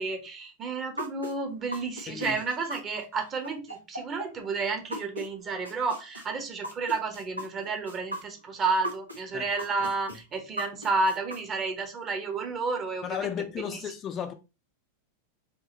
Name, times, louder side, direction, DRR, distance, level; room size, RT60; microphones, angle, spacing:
voice 1, 0.0-13.3 13.6-13.8, right 4 dB, 30° right, 1.0 m, -31 dB
sound 1, 1.0-5.3 5.6-9.2 9.6-11.4, equal, 85° right, 0.9 m, -37 dB
voice 2, 2.1-2.4 9.3-9.4 13.0-14.3, left 8 dB, 30° left, 0.5 m, -34 dB
4.6 x 2.8 x 2.8 m
figure-of-eight pair, 90°, 0 cm